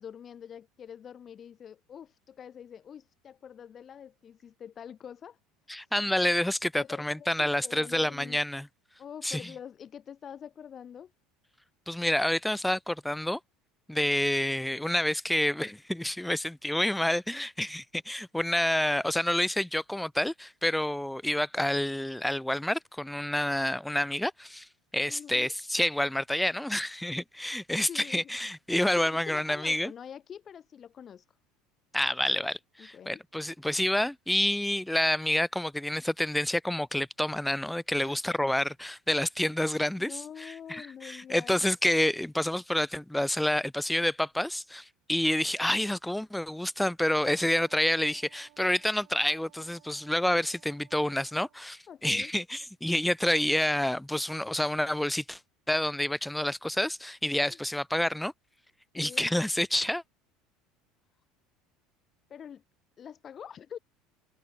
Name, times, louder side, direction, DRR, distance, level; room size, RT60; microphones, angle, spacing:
voice 1, 0.0-5.4 5.8-5.9 6.7-8.4 9.0-11.1 25.1-25.5 27.9-28.2 28.9-31.2 32.8-33.2 38.0-38.2 40.0-41.6 51.9-52.3 57.5-57.6 58.9-59.3 62.3-62.6 63.0-63.8, left 8 dB, 35° left, 1.3 m, -45 dB
voice 2, 5.7-8.7 9.2-9.5 11.9-13.4 13.9-24.7 24.9-29.9 31.9-55.4 55.7-58.3 58.9-60.0, left 1 dB, 5° left, 0.4 m, -28 dB
Wind instrument woodwind instrument, 47.0-51.7, right 30 dB, 70° right, 3.6 m, -61 dB
supercardioid pair, 110°, 0 cm